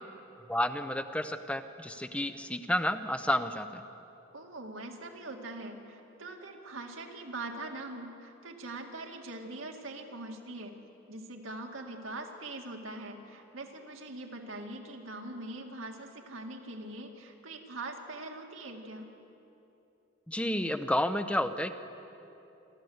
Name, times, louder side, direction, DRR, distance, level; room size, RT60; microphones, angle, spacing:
voice 1, 0.5-3.8 20.3-21.7, left 1 dB, 5° left, 10 dB, 0.6 m, -31 dB
voice 2, 4.3-10.8 11.1-19.1, right 2 dB, 85° right, 2 dB, 2.2 m, -42 dB
27.5 x 12.0 x 7.9 m, 2.9 s
head